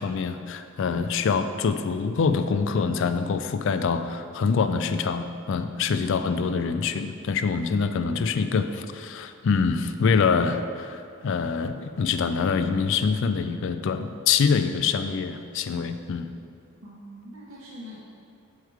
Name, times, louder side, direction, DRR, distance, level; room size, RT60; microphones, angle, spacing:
voice 1, 0.0-16.3, left 5 dB, 60° left, 9 dB, 0.4 m, -25 dB
voice 2, 16.8-18.0, equal, 70° right, -4 dB, 0.8 m, -43 dB
6.4 x 4.6 x 4.6 m, 2.4 s
head